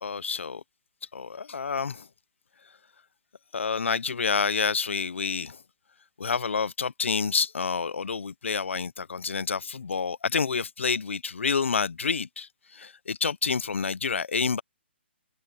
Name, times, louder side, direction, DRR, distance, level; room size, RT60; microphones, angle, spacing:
voice 1, 0.0-0.6 1.1-2.1 3.5-5.6 6.2-14.6, left 5 dB, 90° left, 0.8 m, -28 dB
hypercardioid pair, 165°, 6 cm